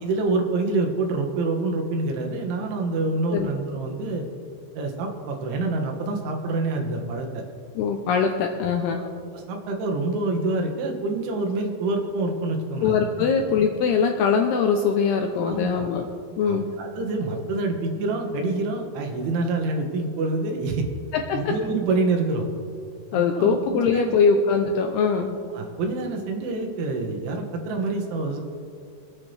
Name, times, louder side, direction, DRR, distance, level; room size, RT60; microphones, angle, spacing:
voice 1, 0.0-4.2 4.8-7.4 9.0-9.1 9.3-13.3 15.5-15.9 16.5-20.9 21.3-22.5 23.1-24.1 25.5-28.4, right 3 dB, 75° right, 2 dB, 3.8 m, -27 dB
voice 2, 7.8-9.1 12.8-16.1 16.4-16.7 21.3-21.4 23.1-25.4, left 5 dB, 80° left, 3 dB, 2.3 m, -22 dB
24.5 x 9.7 x 3.4 m, 2.3 s
omnidirectional pair, 5.6 m